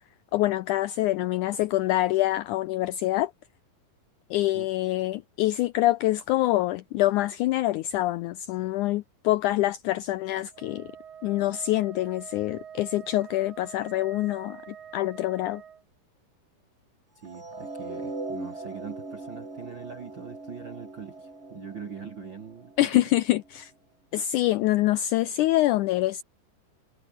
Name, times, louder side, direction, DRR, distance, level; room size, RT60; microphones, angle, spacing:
voice 1, 0.3-3.3 4.3-10.9 11.2-15.6 22.8-23.7 24.1-26.2, left 16 dB, 75° left, 2.0 m, -25 dB
Wind instrument woodwind instrument, 10.5-15.8, right 8 dB, 75° right, 4.3 m, -46 dB
sound 1, 17.2-23.5, right 3 dB, 20° right, 3.4 m, -40 dB
voice 2, 17.2-23.0, right 6 dB, 40° right, 2.1 m, -42 dB
omnidirectional pair, 4.0 m